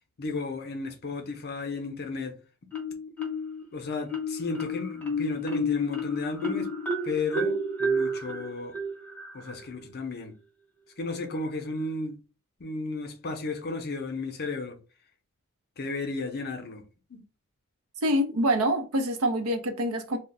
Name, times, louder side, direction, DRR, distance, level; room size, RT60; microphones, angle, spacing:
voice 1, 0.2-2.4 3.7-6.7 7.0-8.8 9.3-10.3 11.0-12.2 12.6-14.8 15.8-16.8 17.1-17.2, left 3 dB, 45° left, 0.6 m, -33 dB
Marimba xylophone, 2.7-3.6 4.1-9.6, equal, 5° left, 0.7 m, -30 dB
voice 2, 18.0-20.2, equal, 75° right, 0.6 m, -25 dB
2.4 x 2.1 x 3.7 m
head